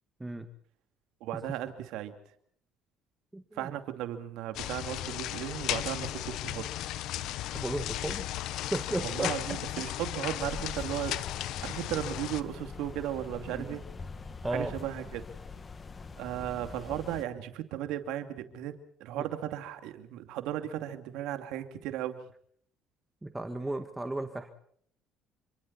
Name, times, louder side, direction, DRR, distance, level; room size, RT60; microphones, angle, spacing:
voice 1, 1.2-2.1 3.6-6.7 9.0-11.2 11.5-13.8 14.5-15.2 16.2-22.3, right 12 dB, 80° right, 8 dB, 2.7 m, -36 dB
voice 2, 3.3-3.7 7.5-8.3 8.7-9.3 13.5-13.7 14.4-14.8 19.2-19.3 23.2-24.5, right 2 dB, 10° right, 8 dB, 1.9 m, -34 dB
sound 1, 4.5-12.4, left 14 dB, 70° left, 1.1 m, -35 dB
sound 2, 10.4-17.2, left 4 dB, 30° left, 2.0 m, -44 dB
28.5 x 25.5 x 4.3 m, 0.62 s
supercardioid pair, 90°, 0 cm